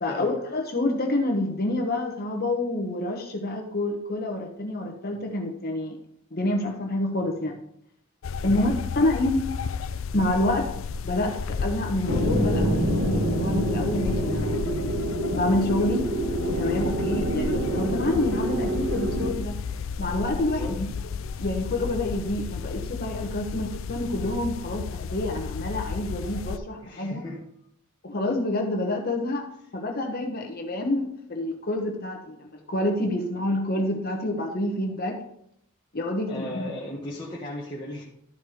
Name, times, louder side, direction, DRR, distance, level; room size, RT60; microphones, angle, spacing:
voice 1, 0.0-6.0 6.3-7.6 8.4-9.5 10.1-10.7 11.0-14.6 15.3-16.1 16.5-19.6 20.0-20.9 21.4-27.2 28.0-29.5 29.7-35.2 35.9-36.7, left 1 dB, 45° left, 2 dB, 1.1 m, -27 dB
sound 1, 8.2-26.6, left 5 dB, 65° left, 0.4 m, -33 dB
sound 2, 12.1-19.3, right 1 dB, 60° right, 1.8 m, -26 dB
voice 2, 20.5-20.8 26.8-27.4 36.2-38.0, left 1 dB, 20° left, -6 dB, 1.3 m, -36 dB
12.0 x 4.7 x 4.9 m, 0.74 s
head